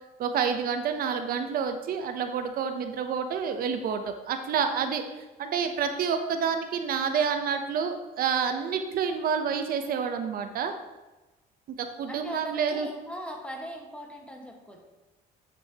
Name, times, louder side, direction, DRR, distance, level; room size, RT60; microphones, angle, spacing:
voice 1, 0.2-5.0 5.4-10.7 11.8-12.9, right 6 dB, 60° right, 7 dB, 0.6 m, -28 dB
voice 2, 12.1-14.8, equal, 5° left, 1 dB, 1.3 m, -39 dB
9.6 x 6.2 x 2.8 m, 1.1 s
cardioid pair, 110°, 17 cm